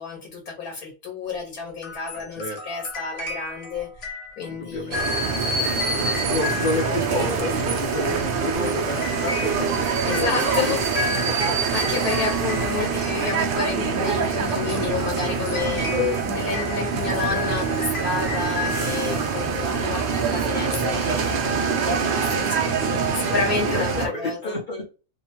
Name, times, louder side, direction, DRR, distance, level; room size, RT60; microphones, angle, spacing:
voice 1, 0.0-4.1 4.4-5.0 10.1-10.8 11.7-15.9 16.3-20.0 20.3-21.4 21.9-24.5, left 4 dB, 85° left, 0 dB, 1.4 m, -30 dB
sound 1, 1.8-13.8 14.4-19.7, left 4 dB, 60° left, 1.1 m, -35 dB
voice 2, 2.1-2.6 4.4-10.3 10.6-11.3 15.9-16.2 23.7-24.9, left 2 dB, 45° left, -2 dB, 0.7 m, -30 dB
sound 2, 4.9-24.1, right 5 dB, 75° right, 0.5 m, -25 dB
2.9 x 2.1 x 2.7 m, 0.33 s
omnidirectional pair, 1.5 m